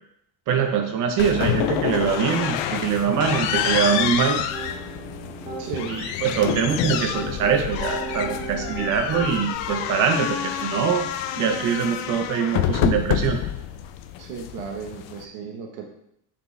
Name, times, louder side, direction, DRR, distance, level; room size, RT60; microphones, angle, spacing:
voice 1, 0.5-4.4 5.9-11.0 11.4-13.4, right 7 dB, 45° right, 4 dB, 0.9 m, -23 dB
sound 1, 1.2-15.2, left 10 dB, 80° left, 0.7 m, -28 dB
Piano, 3.1-4.1 4.5-5.6 6.3-9.5, right 3 dB, 15° right, 1.1 m, -36 dB
voice 2, 5.6-6.0 14.2-15.8, right 6 dB, 85° right, 2 dB, 1.2 m, -34 dB
7.3 x 5.4 x 3.3 m, 0.76 s
cardioid pair, 180°, 44 cm